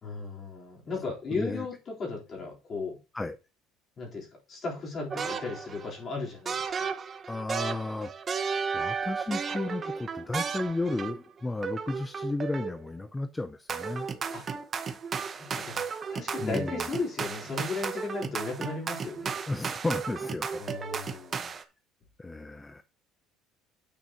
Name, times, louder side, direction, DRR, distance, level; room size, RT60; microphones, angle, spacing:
voice 1, 0.0-3.0 4.0-6.6 14.3-14.4 15.3-15.8 16.1-19.3 20.6-21.5, left 3 dB, 30° left, 3.7 m, -36 dB
voice 2, 1.3-1.7 3.1-3.4 7.3-14.1 16.4-16.9 19.5-20.6 22.2-22.8, left 2 dB, 10° left, 0.4 m, -33 dB
sound 1, 5.1-5.9 6.5-11.3 11.6-12.9 13.7-21.6, right 6 dB, 25° right, 0.8 m, -34 dB
9.1 x 8.8 x 2.9 m
cardioid pair, 160°, 0 cm